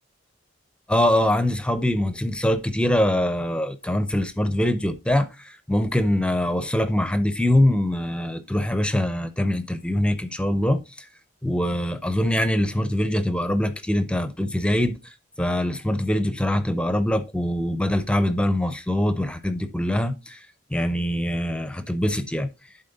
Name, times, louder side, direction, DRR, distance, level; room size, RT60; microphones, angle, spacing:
voice 1, 0.9-11.1 11.4-20.5 20.7-22.5, left 1 dB, 5° left, 0.5 m, -23 dB
11.5 x 4.1 x 4.0 m
head